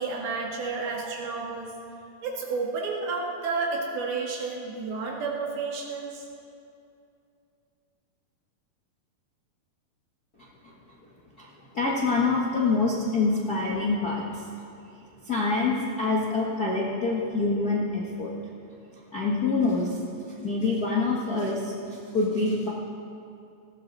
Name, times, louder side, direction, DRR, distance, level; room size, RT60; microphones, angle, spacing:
voice 1, 0.0-1.7 2.2-6.3, right 4 dB, 85° right, -1 dB, 3.8 m, -31 dB
voice 2, 11.7-14.5 15.2-18.3 19.1-20.0 20.4-22.7, left 3 dB, 60° left, -4 dB, 0.9 m, -26 dB
19.5 x 16.5 x 4.1 m, 2.6 s
omnidirectional pair, 4.2 m